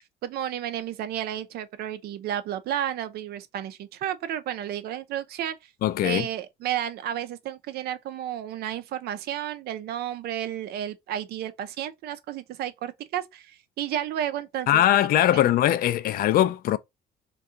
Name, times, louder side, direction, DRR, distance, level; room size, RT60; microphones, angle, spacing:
voice 1, 0.2-5.7 6.0-15.1 15.3-15.5, right 11 dB, 70° right, 0.5 m, -32 dB
voice 2, 5.8-6.3 14.7-16.8, left 12 dB, 60° left, 0.4 m, -21 dB
2.8 x 2.3 x 3.6 m
cardioid pair, 110°, 17 cm